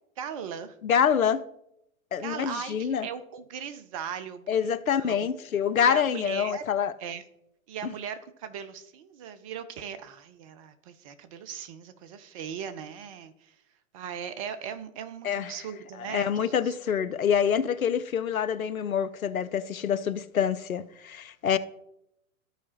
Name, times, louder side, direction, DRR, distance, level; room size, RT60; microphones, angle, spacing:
voice 1, 0.2-0.8 2.2-5.3 5.8-6.6 7.0-7.2 7.7-13.6 13.9-16.7, right 8 dB, 25° right, 0.4 m, -38 dB
voice 2, 0.8-1.4 2.1-3.1 4.5-6.9 7.8-7.9 15.2-15.5 16.0-21.6, left 8 dB, 85° left, 0.5 m, -26 dB
14.0 x 4.7 x 2.8 m
figure-of-eight pair, 100°, 41 cm